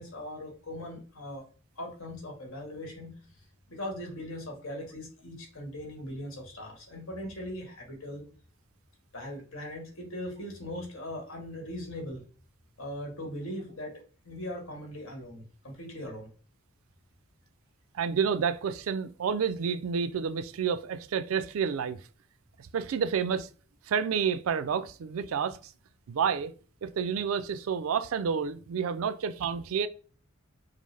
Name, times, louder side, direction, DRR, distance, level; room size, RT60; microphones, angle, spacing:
voice 1, 0.0-1.5 1.8-3.2 3.7-8.3 9.1-12.2 12.8-13.9 14.2-16.3, left 1 dB, 70° left, 1.4 m, -40 dB
voice 2, 17.9-22.0 22.6-23.5 23.9-25.7 26.1-26.5 26.8-29.9, right 6 dB, 75° right, 0.4 m, -29 dB
5.2 x 2.0 x 3.3 m
head